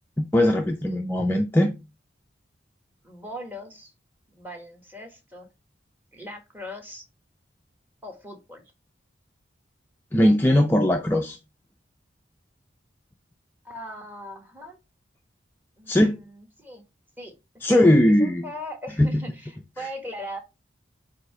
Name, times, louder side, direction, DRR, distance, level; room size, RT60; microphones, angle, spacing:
voice 1, 0.2-1.8 10.1-11.4 15.9-16.2 17.6-18.4 19.0-19.3 19.8-19.9, left 1 dB, 10° left, 0.4 m, -20 dB
voice 2, 3.0-3.9 4.3-5.5 6.1-7.0 8.0-8.6 13.6-14.8 15.8-16.8 17.2-17.3 17.7-20.4, equal, 10° right, 1.3 m, -39 dB
8.3 x 2.8 x 4.5 m
head